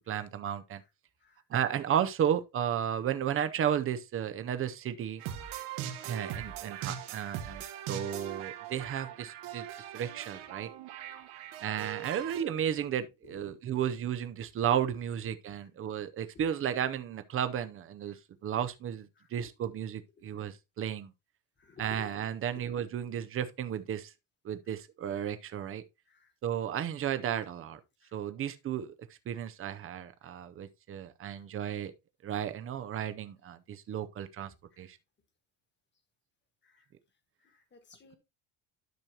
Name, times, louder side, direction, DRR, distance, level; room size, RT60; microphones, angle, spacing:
voice 1, 0.1-0.8 1.5-5.2 6.0-7.6 7.9-9.7 9.9-10.7 11.6-21.1 21.8-24.1 24.4-25.8 26.4-27.8 28.1-28.9 29.3-31.9 32.2-35.0, right 9 dB, 30° right, 0.6 m, -33 dB
sound 1, 5.2-12.4, right 10 dB, 90° right, 1.7 m, -41 dB
voice 2, 13.2-13.6 18.1-18.2 19.2-19.3 21.6-22.1 22.5-22.6 26.1-26.3 28.0-28.1 31.3-31.4 34.7-34.9 36.6-36.9 37.4-38.2, left 5 dB, 20° left, 1.5 m, -54 dB
12.0 x 6.2 x 2.8 m
cardioid pair, 170°, 48 cm